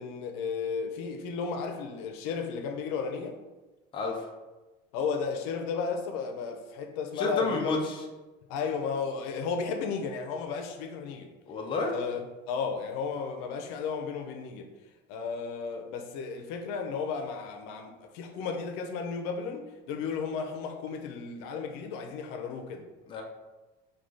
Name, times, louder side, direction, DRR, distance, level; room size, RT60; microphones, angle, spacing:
voice 1, 0.0-3.4 4.9-7.8 8.5-11.3 11.9-14.7 15.1-22.9, left 5 dB, 85° left, 5 dB, 0.6 m, -34 dB
voice 2, 3.9-4.3 7.2-8.0 11.5-12.0 23.1-23.2, left 3 dB, 25° left, 1 dB, 0.5 m, -30 dB
4.7 x 2.3 x 3.8 m, 1.2 s
cardioid pair, 165°, 21 cm